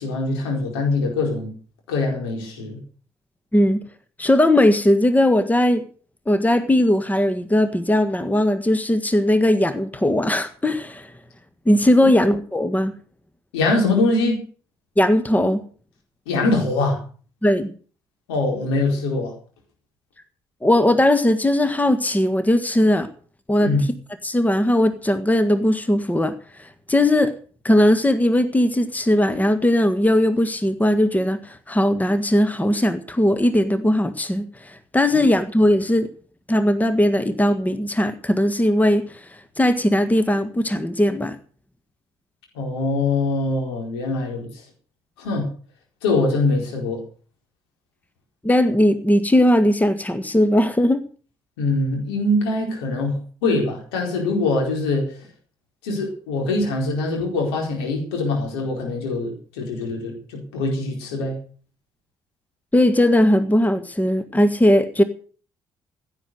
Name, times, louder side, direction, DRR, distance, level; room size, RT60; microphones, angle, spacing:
voice 1, 0.0-1.5 1.9-2.8 12.0-12.1 13.5-14.4 16.3-17.0 18.3-19.3 23.6-23.8 42.5-44.5 45.2-45.5 46.0-47.0 51.6-55.2 55.8-61.4, left 2 dB, 75° left, 1 dB, 4.5 m, -23 dB
voice 2, 3.5-3.8 4.2-5.9 6.3-11.1 11.6-12.9 15.0-15.6 17.4-17.7 20.6-23.1 23.5-23.7 24.2-27.3 27.6-36.1 36.5-41.4 48.4-51.0 62.7-65.0, left 1 dB, 10° left, 10 dB, 1.6 m, -19 dB
16.0 x 9.4 x 6.6 m, 0.42 s
figure-of-eight pair, 45°, 14 cm